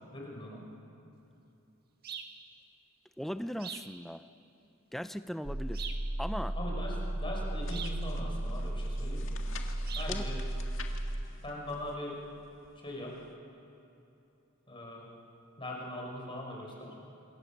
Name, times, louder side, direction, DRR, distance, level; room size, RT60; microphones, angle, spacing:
voice 1, 0.1-0.6 6.6-9.3 9.9-10.4 11.4-12.2 12.8-13.2 14.7-15.1 15.6-17.0, left 1 dB, 25° left, -2 dB, 5.4 m, -41 dB
sound 1, 2.0-2.4 3.6-3.9 5.7-6.1 7.7-8.0 9.9-10.2, right 7 dB, 50° right, 1.7 m, -42 dB
voice 2, 3.2-4.2 4.9-5.9 6.2-6.6 10.1-10.3, equal, ahead, 11 dB, 0.6 m, -38 dB
sound 2, 5.4-11.2, right 1 dB, 80° right, 1.7 m, -35 dB
sound 3, 7.6-13.3, left 6 dB, 65° left, 2.0 m, -50 dB
27.0 x 24.5 x 7.3 m, 2.9 s
head